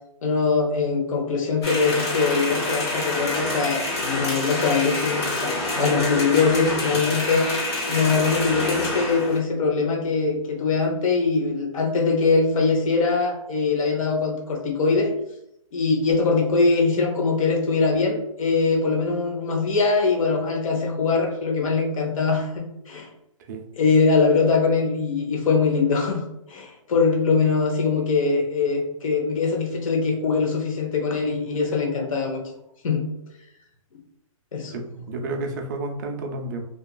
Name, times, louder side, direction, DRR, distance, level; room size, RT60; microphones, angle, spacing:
voice 1, 0.2-7.5 7.9-15.1 15.7-23.1 23.7-26.2 26.5-32.4 32.8-33.0 34.5-35.0, left 4 dB, 70° left, 0 dB, 0.7 m, -22 dB
sound 1, 1.6-9.4, left 2 dB, 45° left, 1.0 m, -27 dB
voice 2, 34.7-36.6, right 2 dB, 35° right, 2 dB, 0.4 m, -31 dB
2.8 x 2.3 x 2.2 m, 0.79 s
hypercardioid pair, 155°, 18 cm